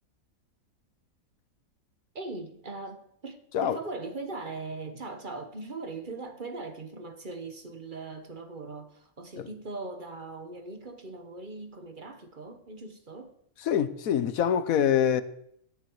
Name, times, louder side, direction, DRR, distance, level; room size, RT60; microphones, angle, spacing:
voice 1, 2.1-13.4, right 3 dB, 40° right, 1.3 m, -40 dB
voice 2, 13.6-15.2, left 9 dB, 85° left, 1.3 m, -25 dB
17.5 x 10.5 x 4.7 m
omnidirectional pair, 1.4 m